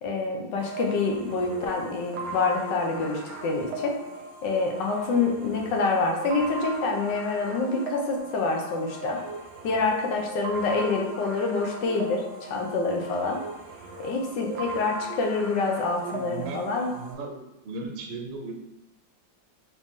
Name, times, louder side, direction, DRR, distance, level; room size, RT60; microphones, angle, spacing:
voice 1, 0.0-3.9 4.4-9.2 9.6-13.4 14.0-16.9, left 3 dB, 75° left, 2 dB, 1.4 m, -27 dB
sound 1, 0.6-17.1, right 2 dB, 65° right, 1.1 m, -37 dB
voice 2, 16.1-18.5, right 3 dB, 85° right, 1 dB, 1.5 m, -37 dB
4.1 x 3.1 x 3.5 m, 0.90 s
omnidirectional pair, 2.0 m